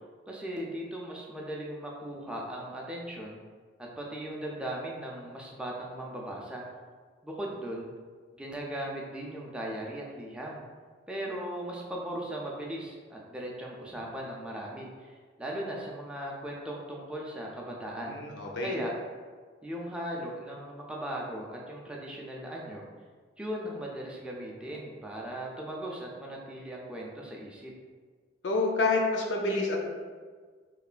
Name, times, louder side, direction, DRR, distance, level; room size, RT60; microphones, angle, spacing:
voice 1, 0.3-3.4 3.8-6.6 7.2-7.9 8.4-10.6 11.1-18.2 18.6-18.9 19.6-22.8 23.4-27.7, right 1 dB, 5° right, -3 dB, 0.3 m, -38 dB
voice 2, 17.9-18.7 28.4-29.8, left 3 dB, 85° left, 0 dB, 0.5 m, -28 dB
3.1 x 2.1 x 2.4 m, 1.6 s
head